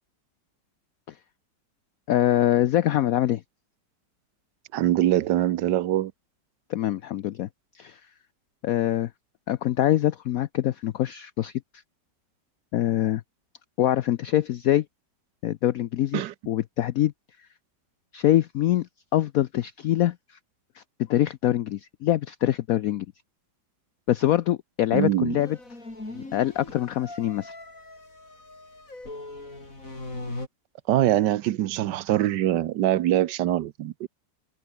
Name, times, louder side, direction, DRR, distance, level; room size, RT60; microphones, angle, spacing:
voice 1, 2.1-3.4 6.7-7.5 7.7-8.0 8.6-9.1 9.5-11.5 12.7-13.2 13.8-14.8 15.4-17.1 18.1-20.2 20.8-20.9 21.1-23.1 24.1-25.6 26.1-27.5, left 13 dB, 65° left, 0.9 m, -24 dB
voice 2, 4.7-6.1 16.1-16.3 24.9-25.4 30.9-34.1, right 13 dB, 75° right, 1.4 m, -23 dB
sound 1, 25.4-30.5, left 2 dB, 45° left, 6.5 m, -40 dB
omnidirectional pair, 1.9 m